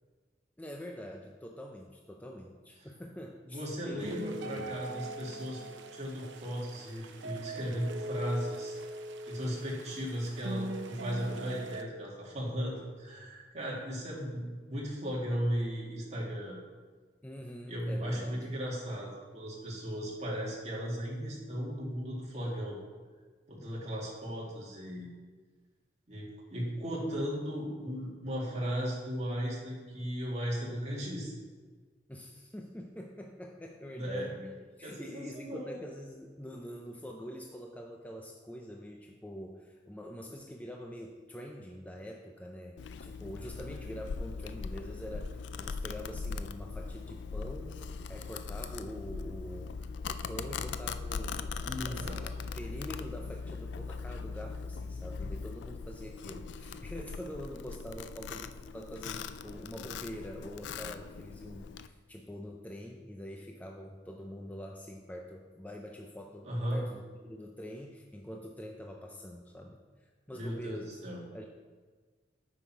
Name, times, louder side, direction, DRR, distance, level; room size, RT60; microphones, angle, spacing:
voice 1, 0.6-4.7 17.2-18.4 32.1-34.5 34.8-71.5, equal, 10° left, 1 dB, 0.5 m, -45 dB
voice 2, 3.5-5.6 5.9-8.8 9.3-16.6 17.7-22.8 23.5-25.1 26.1-31.3 33.9-34.3 34.8-35.7 51.6-52.2 66.4-66.8 70.3-71.2, equal, 40° right, -4 dB, 2.2 m, -36 dB
sound 1, 4.0-11.8, right 1 dB, 80° right, 0.6 m, -41 dB
Domestic sounds home sounds, 42.8-61.9, left 5 dB, 70° left, 0.4 m, -40 dB
9.0 x 6.1 x 4.7 m, 1.5 s
head